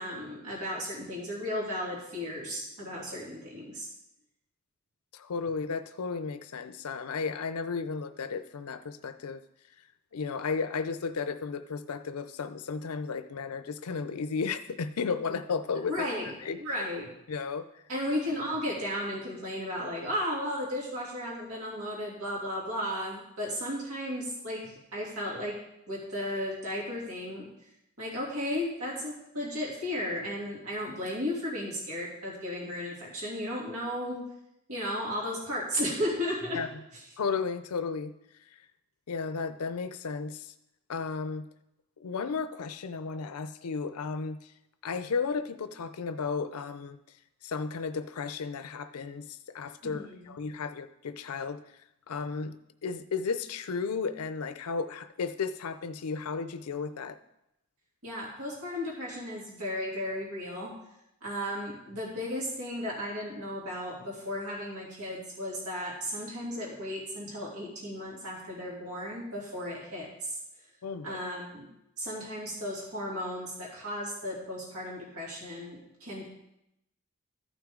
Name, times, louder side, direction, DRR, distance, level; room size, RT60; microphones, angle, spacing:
voice 1, 0.0-3.9 15.9-16.3 16.6-17.1 17.9-25.6 25.9-27.5 28.0-34.2 34.7-36.6 36.9-37.0 49.8-50.4 58.0-60.7 61.2-70.4 71.0-71.7 72.0-76.3, left 1 dB, 85° right, -4 dB, 2.8 m, -35 dB
voice 2, 5.1-9.4 10.1-16.1 16.4-16.6 17.3-17.7 36.5-36.7 37.2-38.1 39.1-40.5 40.9-41.5 42.0-44.4 44.8-47.0 47.4-51.6 52.1-52.5 52.8-57.2 70.8-71.2, left 5 dB, 85° left, 11 dB, 0.5 m, -34 dB
14.0 x 6.1 x 3.7 m, 0.83 s
head